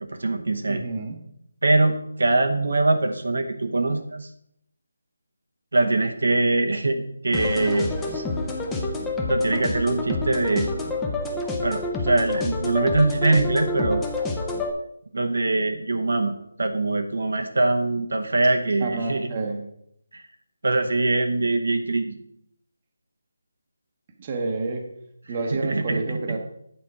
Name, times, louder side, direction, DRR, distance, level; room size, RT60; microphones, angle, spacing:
voice 1, 0.0-0.8 1.6-4.3 5.7-8.2 9.3-10.7 11.6-14.1 15.1-19.3 20.1-20.2 20.6-22.2 25.5-26.4, right 2 dB, 75° right, 5 dB, 0.9 m, -23 dB
voice 2, 0.7-1.2 18.8-19.6 24.2-24.8 25.3-26.4, right 3 dB, 25° right, 3 dB, 0.9 m, -29 dB
sound 1, 7.3-14.7, left 2 dB, 5° left, 0.6 m, -28 dB
8.7 x 4.3 x 4.8 m, 0.75 s
figure-of-eight pair, 165°, 0 cm